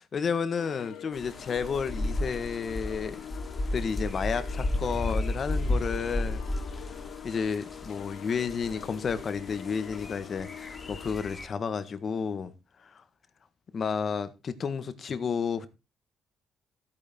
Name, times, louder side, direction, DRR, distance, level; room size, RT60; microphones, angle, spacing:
voice 1, 0.0-3.2 3.7-6.4 7.2-12.5 13.7-15.7, left 6 dB, 50° left, 1.7 m, -31 dB
sound 1, 0.6-11.1, left 10 dB, 80° left, 0.9 m, -45 dB
sound 2, 1.1-11.5, left 1 dB, 30° left, 2.7 m, -34 dB
13.5 x 9.0 x 4.5 m
cardioid pair, 90°, 0 cm